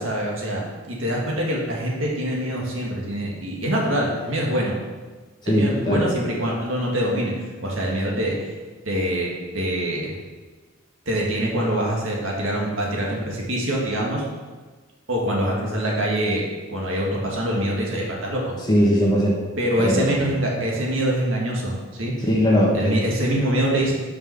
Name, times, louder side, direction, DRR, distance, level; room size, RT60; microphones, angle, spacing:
voice 1, 0.0-4.8 5.5-8.5 8.9-10.1 11.1-14.2 15.1-16.4 16.7-18.5 19.6-22.1 22.7-23.9, right 1 dB, 75° right, -2 dB, 1.8 m, -24 dB
voice 2, 5.4-6.0 18.7-19.4 19.8-20.3 22.3-22.9, equal, 20° left, -4 dB, 1.5 m, -19 dB
6.0 x 5.3 x 5.9 m, 1.3 s
head